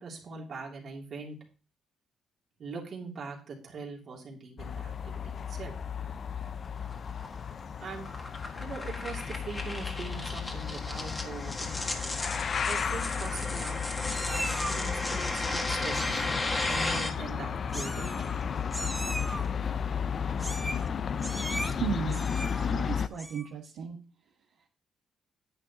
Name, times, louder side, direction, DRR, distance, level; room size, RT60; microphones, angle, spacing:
voice 1, 0.0-1.4 2.6-5.7 7.8-8.1 8.6-12.0 12.7-16.3 16.7-18.3, right 4 dB, 55° right, -1 dB, 2.9 m, -42 dB
sound 1, 4.6-23.1, left 7 dB, 50° left, 0.5 m, -34 dB
sound 2, 6.4-17.1, left 2 dB, 25° left, 1.8 m, -35 dB
Meow, 12.0-12.4 12.7-13.4 14.1-14.9 15.9-16.3 16.6-17.0 17.7-18.4 18.7-19.5 20.4-20.9 21.2-21.7 22.1-22.7 23.1-23.5, right 1 dB, 5° right, 0.9 m, -39 dB
voice 2, 21.8-22.2 22.6-24.0, right 7 dB, 80° right, -2 dB, 1.5 m, -34 dB
9.9 x 8.8 x 2.9 m, 0.35 s
cardioid pair, 90°, 0 cm